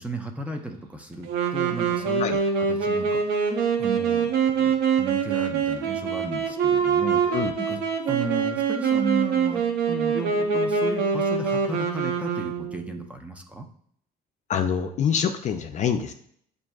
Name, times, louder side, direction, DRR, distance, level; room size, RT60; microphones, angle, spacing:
voice 1, 0.0-2.2 2.6-4.3 4.6-7.2 7.6-13.7, right 2 dB, 10° right, 4 dB, 0.5 m, -35 dB
Wind instrument woodwind instrument, 1.2-13.0, right 6 dB, 90° right, 0.7 m, -24 dB
voice 2, 14.5-16.1, left 7 dB, 45° left, 6 dB, 0.4 m, -25 dB
7.4 x 2.6 x 2.3 m, 0.65 s
cardioid pair, 110°, 17 cm